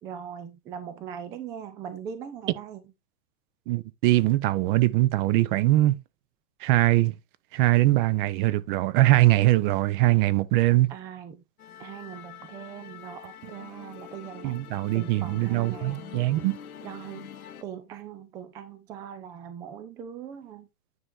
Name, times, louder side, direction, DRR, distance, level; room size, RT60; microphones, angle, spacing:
voice 1, 0.0-2.8 10.9-11.4 11.8-14.6 14.9-16.2 16.8-17.3 17.6-20.7, right 8 dB, 10° right, 0.3 m, -40 dB
voice 2, 3.7-6.0 6.6-7.1 7.5-10.9 14.4-16.6, right 17 dB, 35° right, 0.8 m, -22 dB
Musical instrument, 11.6-17.6, left 9 dB, 70° left, 1.1 m, -45 dB
9.5 x 4.4 x 3.7 m
hypercardioid pair, 110°, 45 cm